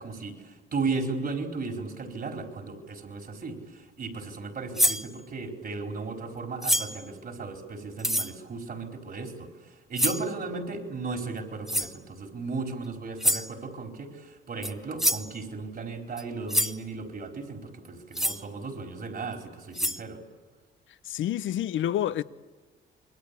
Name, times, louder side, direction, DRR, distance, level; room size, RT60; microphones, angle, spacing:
voice 1, 0.0-20.2, right 4 dB, 50° right, 4.8 m, -35 dB
sound 1, 4.8-5.1 6.6-7.0 8.0-8.3 10.0-10.3 11.7-12.0 13.2-13.5 14.6-14.7 15.0-15.3 16.2-16.3 16.5-16.8 18.1-18.4 19.3-19.4 19.7-20.0, equal, ahead, 1.1 m, -26 dB
voice 2, 21.1-22.2, left 11 dB, 75° left, 0.8 m, -28 dB
26.5 x 22.0 x 8.6 m
cardioid pair, 90°, 20 cm